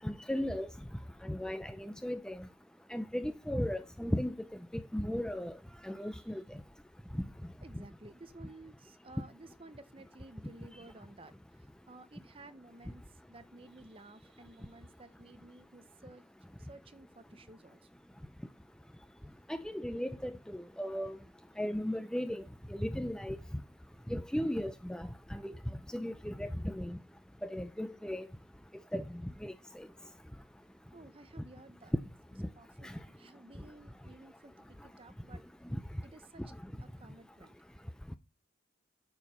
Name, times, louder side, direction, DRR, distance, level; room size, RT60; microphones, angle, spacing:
voice 1, 0.0-0.7 1.2-2.4 2.9-4.3 4.9-5.5 5.8-6.4 19.5-21.2 21.6-22.4 22.7-23.4 24.1-25.5 25.9-27.0 27.4-28.3 28.9-29.0 29.4-29.9 32.8-32.9 35.7-35.8, equal, 5° left, 0.4 m, -36 dB
voice 2, 7.6-16.2 16.6-17.9 30.9-31.9 32.5-35.4 36.0-36.5 36.8-37.5, right 2 dB, 30° right, 0.7 m, -55 dB
9.3 x 4.7 x 5.5 m
head